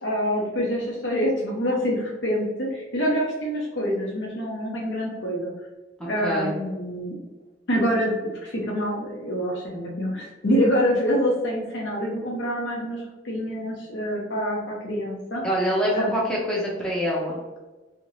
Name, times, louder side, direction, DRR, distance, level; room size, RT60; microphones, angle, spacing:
voice 1, 0.0-5.5 6.0-7.1 7.7-8.1 8.4-15.4 15.9-16.1, equal, 85° left, -3 dB, 0.8 m, -26 dB
voice 2, 6.2-6.5 15.4-17.4, equal, 5° left, -5 dB, 0.7 m, -25 dB
3.6 x 2.8 x 3.1 m, 1.2 s
head